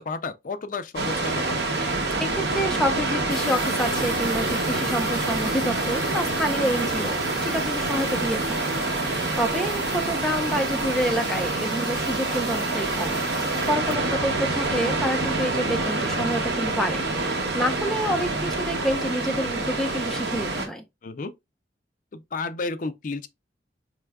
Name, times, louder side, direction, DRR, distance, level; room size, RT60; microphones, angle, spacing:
voice 1, 0.0-1.6 21.0-21.3 22.1-23.3, left 3 dB, 50° left, 0.4 m, -32 dB
sound 1, 0.9-20.7, right 2 dB, 75° right, 0.9 m, -26 dB
voice 2, 2.2-13.2 13.7-20.8, equal, 5° left, 0.6 m, -28 dB
sound 2, 3.3-15.8 16.6-16.7 16.9-17.3 17.6-18.2 18.8-18.9 19.0-19.1, left 3 dB, 25° left, 2.8 m, -40 dB
4.8 x 3.2 x 2.2 m
head